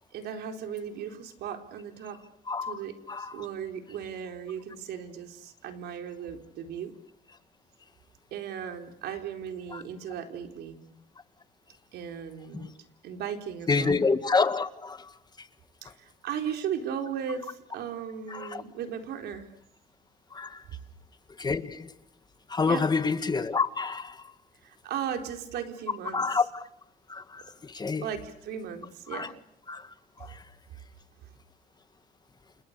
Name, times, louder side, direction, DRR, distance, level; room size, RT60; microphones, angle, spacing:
voice 1, 0.1-2.2 2.6-6.9 8.3-10.8 11.9-12.8 13.0-14.0 15.8-19.5 22.6-22.9 24.6-26.3 28.0-29.4, right 8 dB, 75° right, 4.1 m, -36 dB
voice 2, 2.5-2.8 3.1-3.4 9.7-9.8 12.5-12.7 13.7-15.0 18.3-18.6 20.3-20.6 21.4-21.9 22.5-24.2 26.1-26.4 27.1-28.0 29.1-29.3 29.7-29.8 30.2-30.4, left 4 dB, 25° left, 1.7 m, -28 dB
30.0 x 29.0 x 6.8 m
cardioid pair, 110°, 17 cm